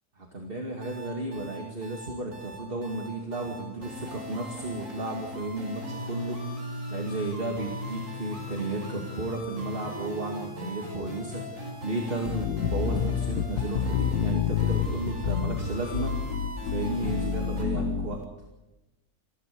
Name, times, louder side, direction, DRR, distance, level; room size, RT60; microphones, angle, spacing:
voice 1, 0.3-6.4 6.9-16.1 16.6-18.2, right 2 dB, 35° right, 1 dB, 2.5 m, -33 dB
sound 1, 0.8-17.6, equal, 50° right, 6.1 m, -39 dB
sound 2, 12.3-18.2, left 8 dB, 70° left, 1.5 m, -29 dB
21.5 x 15.5 x 8.4 m, 1.0 s
omnidirectional pair, 1.7 m